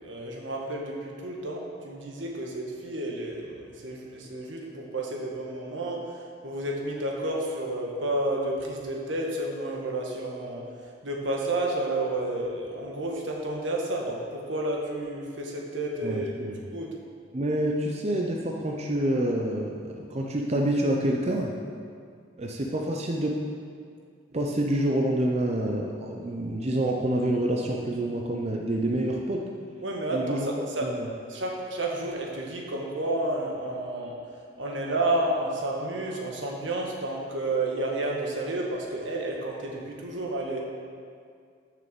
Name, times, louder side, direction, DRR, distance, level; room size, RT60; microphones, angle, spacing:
voice 1, 0.0-6.0 6.4-10.6 11.0-16.3 16.7-16.9 29.8-30.9 31.3-34.2 34.6-40.6, right 1 dB, 80° right, -1 dB, 1.5 m, -31 dB
voice 2, 16.0-16.6 17.3-21.5 22.4-23.4 24.3-29.4 30.1-30.5 30.8-31.1, right 1 dB, 35° right, 0 dB, 0.6 m, -27 dB
6.7 x 6.5 x 6.7 m, 2.2 s
head